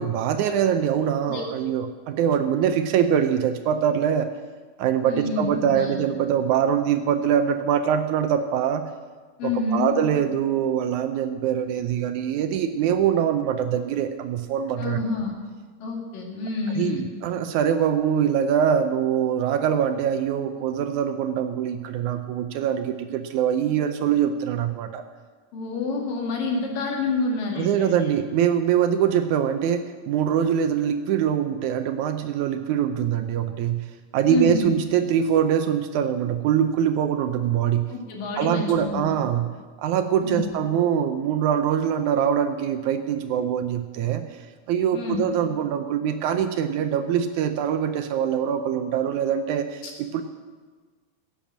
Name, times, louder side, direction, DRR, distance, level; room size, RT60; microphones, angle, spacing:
voice 1, 0.0-4.3 4.8-8.9 9.4-15.0 16.8-25.0 27.6-33.9 34.1-37.9 38.4-39.5 39.8-50.2, right 8 dB, 75° right, 8 dB, 1.9 m, -23 dB
voice 2, 5.1-5.9 9.4-9.9 14.8-15.3 15.8-17.1 25.5-28.0 34.3-34.7 37.9-39.1 40.2-40.5 44.9-45.3 49.8-49.9, left 3 dB, 85° left, 0 dB, 3.9 m, -28 dB
16.0 x 8.8 x 7.3 m, 1.5 s
omnidirectional pair, 3.8 m